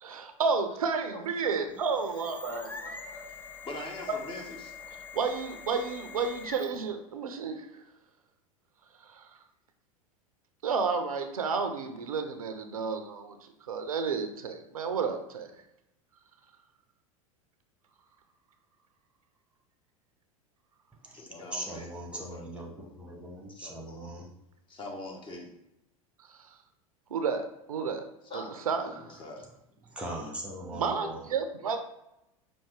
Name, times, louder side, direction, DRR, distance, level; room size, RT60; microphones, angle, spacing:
voice 1, 0.0-2.7 5.1-7.7 9.1-9.2 10.6-13.4 13.7-15.5 27.1-28.1 28.3-29.2 30.7-31.8, right 5 dB, 75° right, 7 dB, 0.5 m, -31 dB
sound 1, 1.6-6.9, left 5 dB, 10° left, 0.4 m, -45 dB
voice 2, 2.1-3.3 3.6-4.7 21.1-22.7 23.0-24.1 24.7-25.5 28.3-29.5, left 2 dB, 25° left, 1 dB, 1.0 m, -44 dB
voice 3, 21.5-24.3 29.9-31.2, right 1 dB, 5° right, 0 dB, 1.0 m, -40 dB
5.4 x 2.6 x 3.6 m, 0.86 s
figure-of-eight pair, 85°, 18 cm